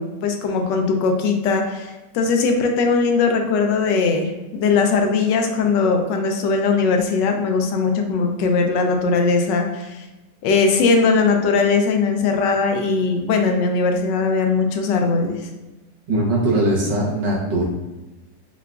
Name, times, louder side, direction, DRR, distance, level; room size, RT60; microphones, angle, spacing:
voice 1, 0.0-10.0 10.4-15.5, left 4 dB, 80° left, 4 dB, 1.2 m, -19 dB
voice 2, 16.1-17.6, right 1 dB, 85° right, -3 dB, 1.7 m, -20 dB
6.5 x 2.4 x 2.4 m, 1.1 s
omnidirectional pair, 1.9 m